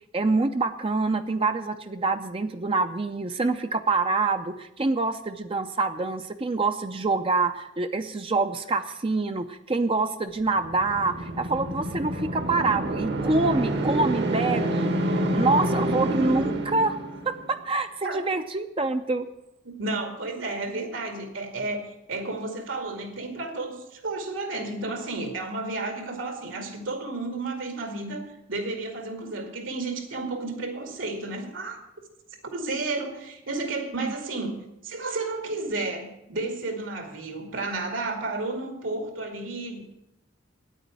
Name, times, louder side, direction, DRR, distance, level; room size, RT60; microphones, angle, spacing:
voice 1, 0.1-14.9 15.3-17.0 17.3-19.3 34.0-34.1, right 3 dB, 30° right, 8 dB, 0.5 m, -26 dB
sound 1, 10.6-17.5, right 1 dB, 60° right, 1.2 m, -27 dB
voice 2, 19.6-31.8 32.5-39.8, right 2 dB, 80° right, 5 dB, 2.4 m, -32 dB
9.3 x 9.1 x 8.9 m, 0.86 s
head